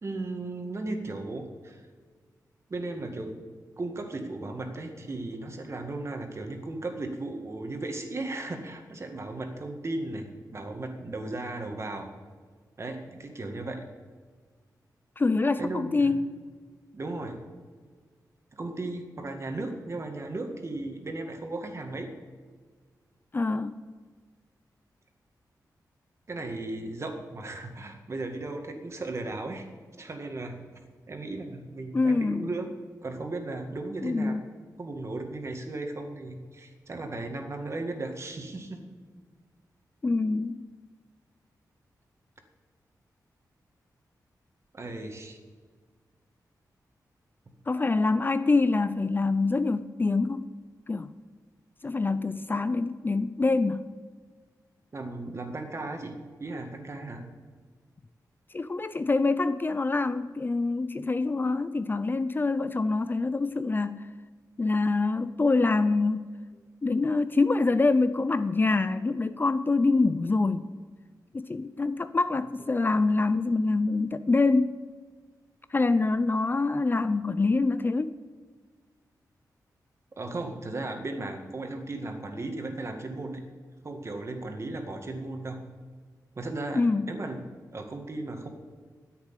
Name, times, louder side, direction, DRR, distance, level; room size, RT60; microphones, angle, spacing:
voice 1, 0.0-1.8 2.7-3.3 3.8-12.1 12.8-13.9 15.6-16.1 16.9-17.4 18.5-22.1 26.3-29.7 30.0-30.6 31.1-32.7 33.0-34.3 34.8-38.8 44.7-45.4 54.9-57.2 80.2-83.4 83.8-85.6 86.4-87.5 87.7-88.5, right 2 dB, 40° right, 4 dB, 1.9 m, -36 dB
voice 2, 15.2-16.3 23.3-23.8 31.9-32.5 34.0-34.4 40.0-40.6 47.7-50.5 50.9-51.1 51.8-53.9 58.5-64.1 64.6-66.3 66.8-70.7 71.3-74.8 75.7-78.2 86.8-87.1, left 3 dB, 30° left, 13 dB, 0.5 m, -25 dB
10.5 x 8.2 x 9.1 m, 1.5 s
wide cardioid pair, 90°, 7 cm